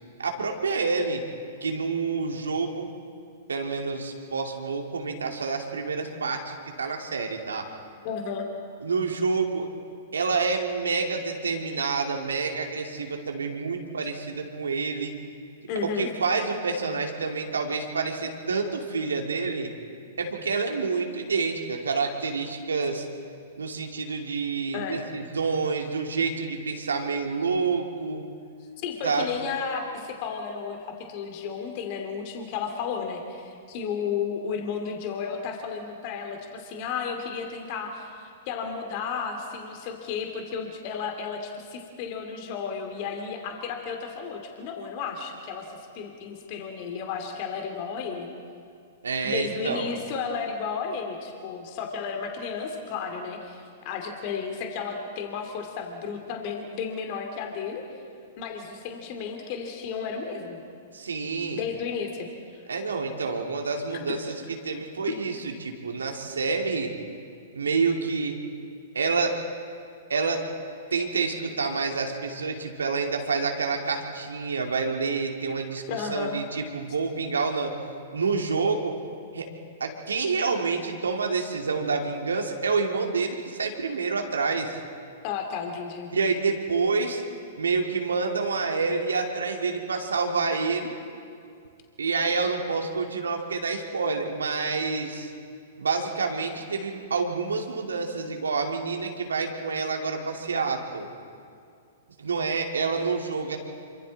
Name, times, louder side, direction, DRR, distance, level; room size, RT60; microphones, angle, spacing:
voice 1, 0.2-1.2 1.6-2.9 3.5-7.6 8.8-9.7 10.1-15.1 15.8-19.7 20.2-23.1 23.6-28.2 29.0-29.3 49.0-49.9 60.9-61.6 62.7-64.3 64.6-66.9 67.5-68.3 68.9-69.4 70.1-70.4 70.9-77.7 78.1-78.9 79.3-79.5 79.8-84.7 86.1-87.2 87.6-90.9 92.0-95.3 95.8-101.1 102.2-103.6, right 4 dB, 75° right, 2 dB, 2.6 m, -28 dB
voice 2, 8.0-8.5 15.7-16.1 24.7-25.0 28.8-48.3 49.2-57.8 58.4-60.6 61.5-62.3 63.9-64.2 75.9-76.4 85.2-86.1, left 6 dB, 45° left, 4 dB, 2.6 m, -33 dB
27.5 x 25.0 x 4.2 m, 2.3 s
figure-of-eight pair, 110°, 0 cm